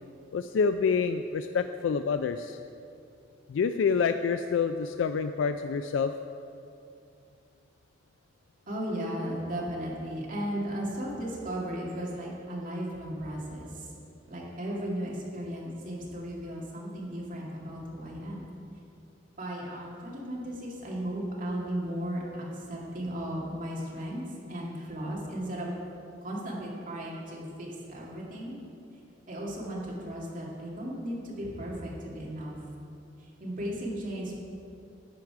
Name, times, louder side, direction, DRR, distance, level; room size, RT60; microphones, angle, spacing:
voice 1, 0.3-2.6 3.5-6.1, left 5 dB, 90° left, 9 dB, 0.3 m, -27 dB
voice 2, 8.7-13.9 14.3-18.4 19.4-24.2 24.5-25.7 26.2-28.6 29.3-32.6 33.4-34.4, equal, 45° right, -4 dB, 2.1 m, -35 dB
10.5 x 7.9 x 4.7 m, 2.5 s
head